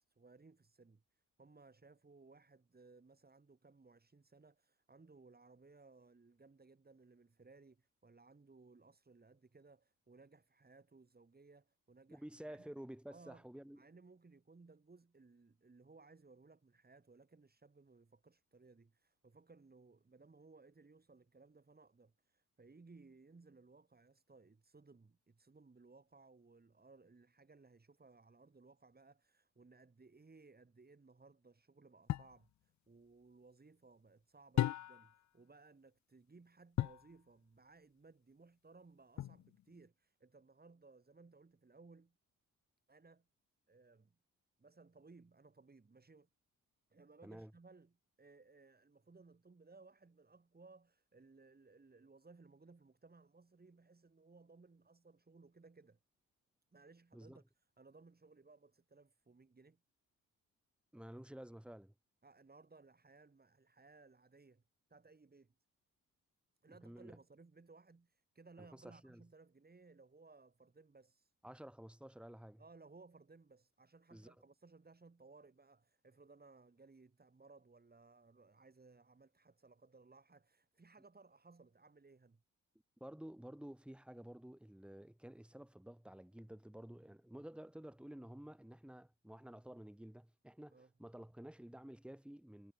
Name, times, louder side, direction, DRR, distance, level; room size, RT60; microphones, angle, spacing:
voice 1, 0.0-12.7 13.1-13.5 13.7-42.1 42.9-43.3 43.7-44.2 44.6-46.3 46.9-56.0 56.7-59.8 62.2-64.6 64.9-65.5 66.6-71.3 72.6-82.4 90.7-90.9, right 3 dB, 30° right, 4.9 m, -62 dB
voice 2, 12.1-13.8 47.2-47.5 57.1-57.4 60.9-61.9 66.7-67.2 68.6-69.2 71.4-72.6 74.1-74.3 83.0-92.7, right 1 dB, 5° right, 2.2 m, -52 dB
sound 1, 32.1-32.4 34.6-35.2 36.8-37.1 39.2-39.7, left 12 dB, 55° left, 0.6 m, -36 dB
supercardioid pair, 65°, 33 cm